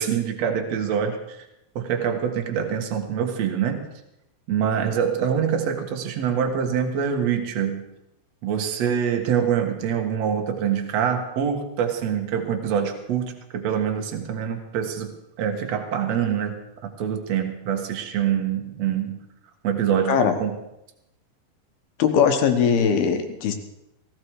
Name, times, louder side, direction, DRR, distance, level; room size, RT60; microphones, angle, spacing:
voice 1, 0.0-1.4 1.8-3.8 4.5-7.8 8.4-15.1 15.4-19.2 19.6-20.6, right 8 dB, 55° right, 4 dB, 1.9 m, -25 dB
voice 2, 22.0-23.5, left 7 dB, 65° left, 6 dB, 3.0 m, -20 dB
17.5 x 16.0 x 4.8 m, 0.88 s
omnidirectional pair, 5.1 m